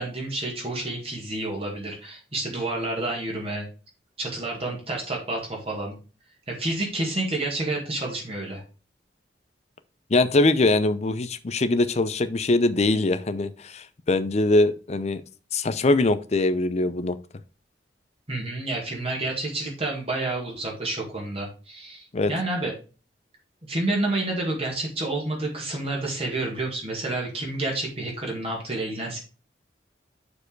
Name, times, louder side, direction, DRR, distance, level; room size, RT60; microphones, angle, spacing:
voice 1, 0.0-3.7 4.2-6.0 6.5-8.6 18.3-22.7 23.7-29.2, right 2 dB, 35° right, -1 dB, 2.0 m, -29 dB
voice 2, 10.1-15.2 15.5-17.2 22.1-22.3, left 2 dB, 35° left, 12 dB, 0.6 m, -22 dB
6.8 x 4.7 x 4.6 m, 0.34 s
head